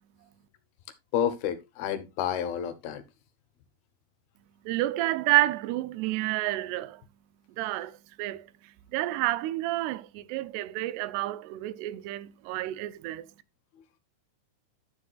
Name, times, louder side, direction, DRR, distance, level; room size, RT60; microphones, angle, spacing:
voice 1, 1.1-3.0, left 9 dB, 75° left, 2.8 m, -30 dB
voice 2, 4.7-7.0 7.6-8.5 8.9-13.3, right 17 dB, 85° right, 2.7 m, -29 dB
10.5 x 9.5 x 2.3 m
omnidirectional pair, 4.6 m